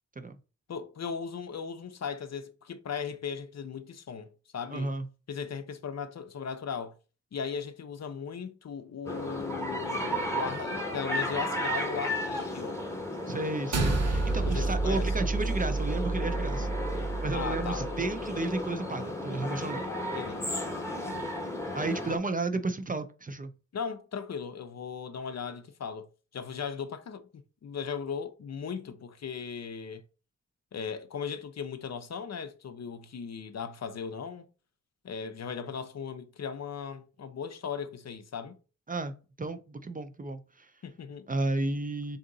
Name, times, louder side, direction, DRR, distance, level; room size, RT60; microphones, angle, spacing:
voice 1, 0.7-4.9 5.3-6.9 7.3-12.8 14.4-15.3 17.3-17.8 20.1-20.5 21.0-21.3 23.7-26.1 26.3-27.3 27.6-30.0 30.7-34.5 35.0-38.5 40.8-41.3, left 6 dB, 60° left, 0.5 m, -37 dB
voice 2, 4.7-5.1 13.3-16.7 17.2-19.9 21.7-23.5 38.9-39.1 39.4-40.7 41.3-42.2, right 3 dB, 30° right, 0.4 m, -32 dB
sound 1, 9.1-22.2, left 1 dB, 10° left, 0.8 m, -34 dB
sound 2, 13.7-18.3, right 3 dB, 55° right, 0.7 m, -30 dB
3.7 x 2.8 x 3.8 m
wide cardioid pair, 100°, 30 cm